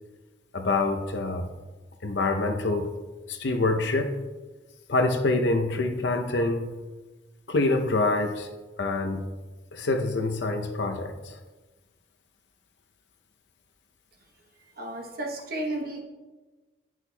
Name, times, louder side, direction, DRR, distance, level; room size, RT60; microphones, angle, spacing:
voice 1, 0.5-1.5 2.0-2.9 3.3-4.2 4.9-6.7 7.5-8.5 8.8-9.2 9.7-11.1, left 2 dB, 65° left, 5 dB, 0.6 m, -26 dB
voice 2, 14.8-16.0, right 1 dB, 50° right, 2 dB, 0.9 m, -33 dB
9.9 x 6.3 x 2.2 m, 1.2 s
head